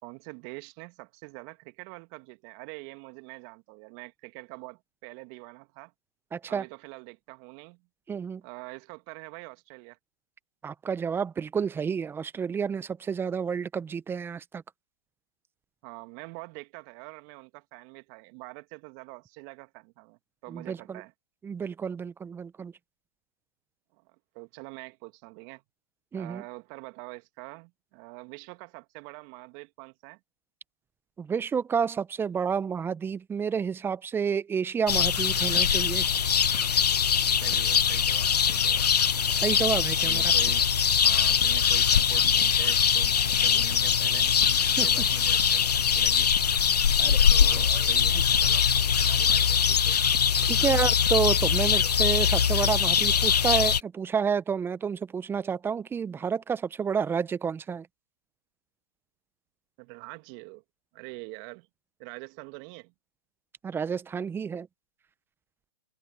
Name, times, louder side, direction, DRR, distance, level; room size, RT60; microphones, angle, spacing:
voice 1, 0.0-5.9 6.5-7.8 8.4-10.0 15.8-21.1 24.3-25.6 26.1-30.2 37.3-38.9 40.0-40.6 41.0-46.3 47.3-50.8 59.8-60.6 60.9-61.7 62.0-62.9, right 32 dB, 30° right, 2.0 m, -45 dB
voice 2, 6.3-6.6 8.1-8.4 10.6-14.6 20.5-21.0 21.4-22.7 26.1-26.4 31.2-36.1 39.3-40.2 44.8-44.9 47.0-47.3 47.5-47.9 50.4-57.9 63.6-64.7, right 6 dB, 10° right, 1.1 m, -30 dB
sound 1, 34.9-53.8, left 7 dB, 70° left, 0.9 m, -22 dB
figure-of-eight pair, 125°, 21 cm